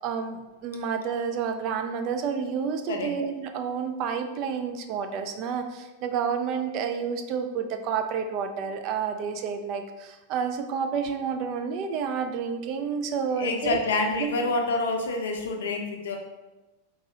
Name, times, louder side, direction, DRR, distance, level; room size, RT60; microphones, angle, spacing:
voice 1, 0.0-13.8 14.2-14.3, right 6 dB, 40° right, 6 dB, 0.3 m, -30 dB
voice 2, 13.4-16.2, left 3 dB, 60° left, 3 dB, 0.5 m, -27 dB
3.8 x 2.8 x 2.8 m, 1.1 s
figure-of-eight pair, 90°, 0 cm